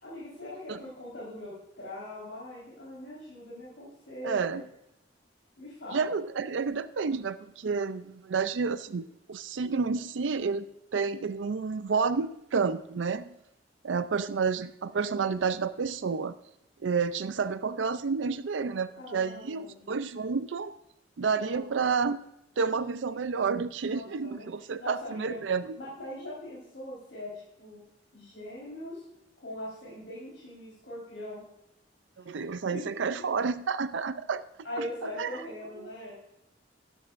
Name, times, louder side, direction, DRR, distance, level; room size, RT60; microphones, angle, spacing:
voice 1, 0.0-4.6 5.6-6.1 19.0-19.9 21.4-21.6 23.9-24.5 24.8-25.4 25.7-27.3 27.6-27.8 28.1-29.0 29.4-31.4 32.3-32.8 34.6-36.1, left 1 dB, 90° left, -7 dB, 4.4 m, -41 dB
voice 2, 4.2-4.6 5.9-10.7 10.9-13.3 13.8-16.3 16.8-20.8 21.2-22.2 22.6-25.7 32.3-34.4 34.8-34.9 35.2-35.3, right 5 dB, 80° right, 13 dB, 0.5 m, -30 dB
13.0 x 11.5 x 2.6 m, 0.83 s
head